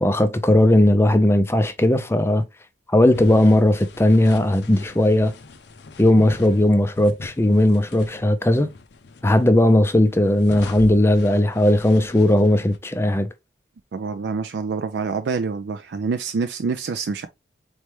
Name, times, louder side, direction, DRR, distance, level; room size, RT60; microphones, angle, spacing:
voice 1, 0.0-2.4 2.9-5.3 6.0-8.7 9.2-13.3, left 1 dB, 15° left, 0.4 m, -17 dB
sound 1, 3.1-8.2 8.5-9.4 9.9-12.8, left 3 dB, 65° left, 0.5 m, -40 dB
voice 2, 13.9-17.3, right 5 dB, 65° right, 0.4 m, -26 dB
4.3 x 3.2 x 3.1 m
head